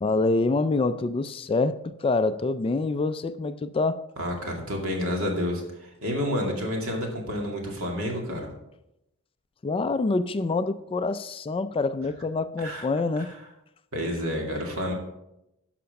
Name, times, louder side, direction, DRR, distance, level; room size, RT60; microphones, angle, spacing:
voice 1, 0.0-4.0 9.6-13.3, left 3 dB, 25° left, 0.3 m, -26 dB
voice 2, 4.2-8.5 12.6-12.9 13.2-13.3 13.9-14.9, equal, 65° right, 2.3 m, -29 dB
11.0 x 5.8 x 5.2 m
head